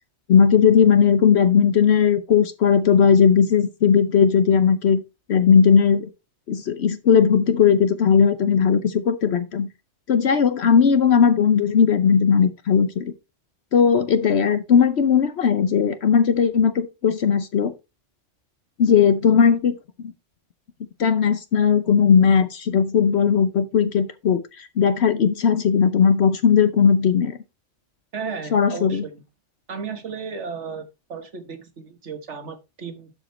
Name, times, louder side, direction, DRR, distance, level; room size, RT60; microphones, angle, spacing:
voice 1, 0.3-5.0 5.3-6.1 6.5-9.7 10.1-13.1 13.7-17.7 18.8-20.1 21.0-27.4 28.5-29.0, left 7 dB, 65° left, 1.0 m, -18 dB
voice 2, 28.1-29.2 29.7-33.1, right 5 dB, 70° right, 1.7 m, -34 dB
12.0 x 5.1 x 4.2 m
omnidirectional pair, 1.2 m